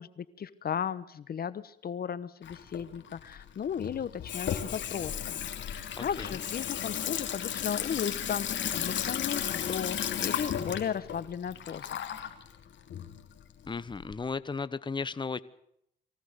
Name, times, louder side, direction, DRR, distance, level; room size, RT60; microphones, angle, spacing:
voice 1, 0.0-12.0, left 8 dB, 50° left, 16 dB, 1.1 m, -36 dB
Water tap faucet / Sink (filling or washing), 2.4-14.1, left 9 dB, 65° left, 3.0 m, -34 dB
voice 2, 6.0-6.3 13.7-15.4, left 4 dB, 25° left, 15 dB, 1.1 m, -35 dB
23.0 x 16.5 x 6.7 m, 0.73 s
cardioid pair, 90°, 20 cm